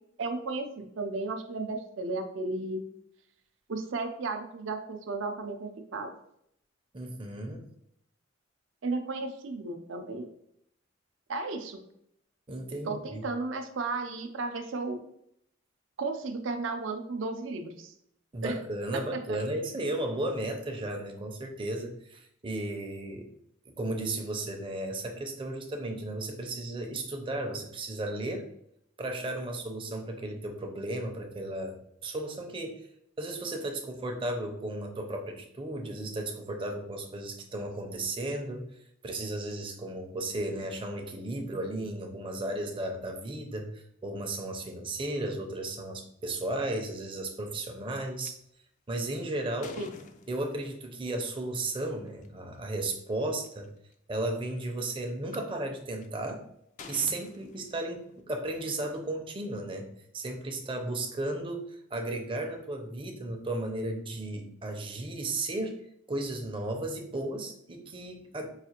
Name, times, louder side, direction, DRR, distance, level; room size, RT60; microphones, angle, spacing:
voice 1, 0.2-2.8 3.7-6.1 8.8-10.3 11.3-11.8 12.8-15.1 16.0-17.9 18.4-18.6 18.9-19.4 49.8-49.9, right 3 dB, 70° right, 6 dB, 0.5 m, -34 dB
voice 2, 6.9-7.6 12.5-13.2 18.3-23.2 23.7-28.4 29.0-31.8 32.0-32.9 33.2-38.6 39.0-48.3 48.9-49.8 50.3-53.7 54.1-56.4 56.9-59.9 60.1-65.7 66.1-68.5, right 2 dB, 25° right, 3 dB, 0.5 m, -34 dB
sound 1, 48.2-48.3 48.9-50.8 52.1-52.3 52.9-53.0 53.2-53.7 54.4-55.4 56.0-56.3 56.8-58.2, left 4 dB, 40° left, 0.3 m, -49 dB
4.8 x 2.5 x 2.8 m, 0.74 s
head